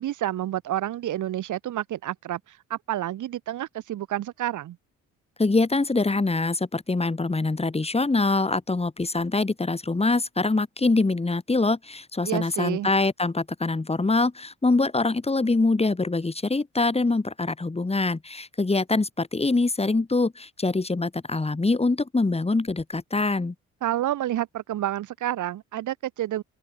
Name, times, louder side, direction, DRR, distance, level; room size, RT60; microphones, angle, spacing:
voice 1, 0.0-4.8 12.2-12.9 23.8-26.4, right 13 dB, 80° right, 8.0 m, -29 dB
voice 2, 5.4-23.5, left 3 dB, 20° left, 5.7 m, -24 dB
open air
cardioid pair, 90°, 30 cm